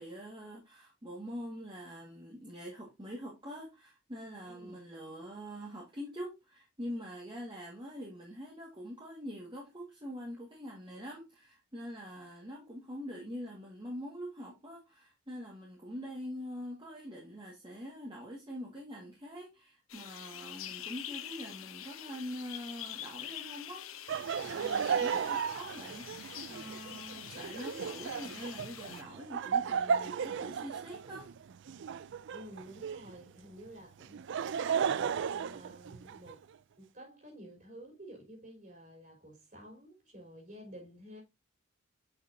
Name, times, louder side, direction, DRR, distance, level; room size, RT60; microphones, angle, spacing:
voice 1, 0.0-23.9 24.4-26.1 26.5-31.3, equal, 25° right, 1.8 m, -44 dB
voice 2, 4.5-4.8 32.3-34.3 34.7-36.5 36.8-41.2, equal, 40° right, 4.1 m, -51 dB
sound 1, 19.9-29.0, left 11 dB, 80° left, 0.8 m, -45 dB
Laughter, 24.1-33.1 34.0-36.4, right 7 dB, 60° right, 0.4 m, -35 dB
7.9 x 5.7 x 2.7 m
head